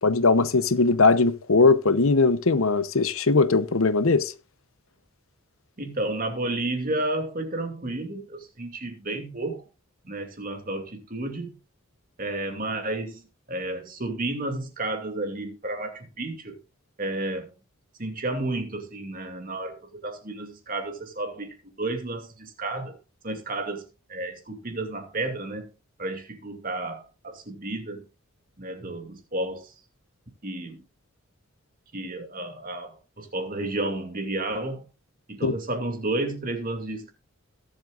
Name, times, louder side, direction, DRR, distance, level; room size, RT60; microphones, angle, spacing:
voice 1, 0.0-4.3 35.4-35.5, left 3 dB, 70° left, 0.9 m, -20 dB
voice 2, 5.8-9.6 10.0-11.6 12.2-16.6 17.0-17.5 18.0-23.0 23.2-25.7 26.0-28.1 28.6-29.7 30.4-30.8 31.9-34.9 35.3-37.1, right 2 dB, 40° right, 2.5 m, -32 dB
22.5 x 7.7 x 2.5 m
head